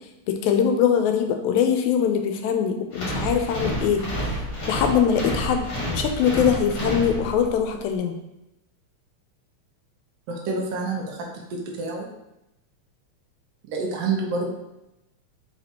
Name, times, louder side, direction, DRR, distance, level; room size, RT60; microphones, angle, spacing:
voice 1, 0.3-4.3 4.7-8.2, left 8 dB, 85° left, 5 dB, 1.9 m, -22 dB
sound 1, 2.9-7.7, equal, 50° left, 1.7 m, -29 dB
voice 2, 10.3-12.1 13.7-14.5, right 3 dB, 70° right, 0 dB, 1.6 m, -28 dB
4.5 x 4.2 x 2.8 m, 0.90 s
omnidirectional pair, 3.3 m